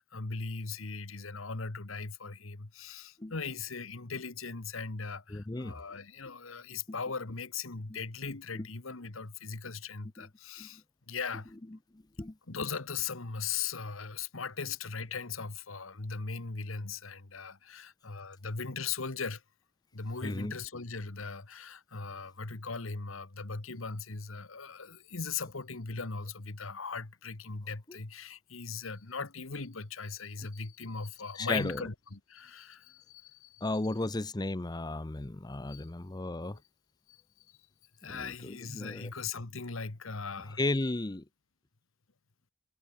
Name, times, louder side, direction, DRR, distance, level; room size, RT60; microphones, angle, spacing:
voice 1, 0.0-11.5 12.5-19.4 19.9-33.7 35.7-35.9 37.1-37.2 38.0-40.6, left 5 dB, 85° left, 1.6 m, -39 dB
voice 2, 5.3-5.8 6.9-7.0 8.5-8.7 10.2-10.3 10.6-10.7 11.9-12.3 20.2-20.5 27.9-28.0 31.3-31.8 33.6-36.6 38.0-39.1 40.6-41.2, left 2 dB, 20° left, 0.7 m, -34 dB
head